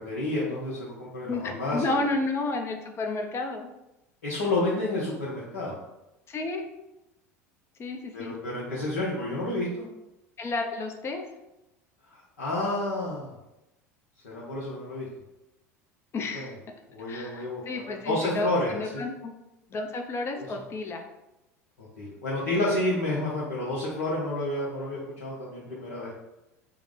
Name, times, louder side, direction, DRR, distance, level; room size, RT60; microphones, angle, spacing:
voice 1, 0.0-2.0 4.2-5.8 8.1-9.9 12.1-13.3 14.2-15.1 16.3-16.5 16.9-17.6 18.0-19.1 20.4-20.5 21.8-26.1, left 2 dB, 75° left, -6 dB, 0.8 m, -30 dB
voice 2, 1.3-3.7 6.3-6.6 7.8-8.3 10.4-11.2 16.1-16.5 17.1-19.3 19.7-21.0, left 2 dB, 30° left, 4 dB, 0.5 m, -31 dB
4.6 x 2.1 x 3.4 m, 0.94 s
figure-of-eight pair, 75°, 9 cm